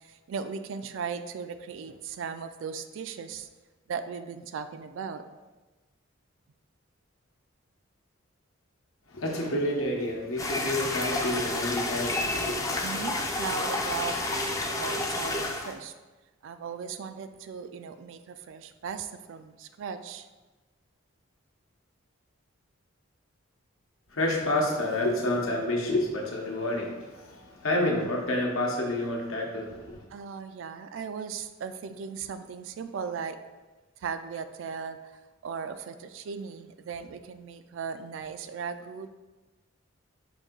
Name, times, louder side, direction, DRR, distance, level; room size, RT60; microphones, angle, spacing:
voice 1, 0.0-3.5 3.9-5.2 12.8-15.9 16.4-20.3 30.1-33.4 34.0-39.1, right 6 dB, 65° right, 10 dB, 0.3 m, -37 dB
voice 2, 9.1-12.8 24.1-30.0, left 1 dB, 85° left, -1 dB, 0.9 m, -29 dB
sound 1, 10.4-15.7, left 2 dB, 15° left, 0.4 m, -30 dB
5.2 x 2.7 x 3.7 m, 1.2 s
head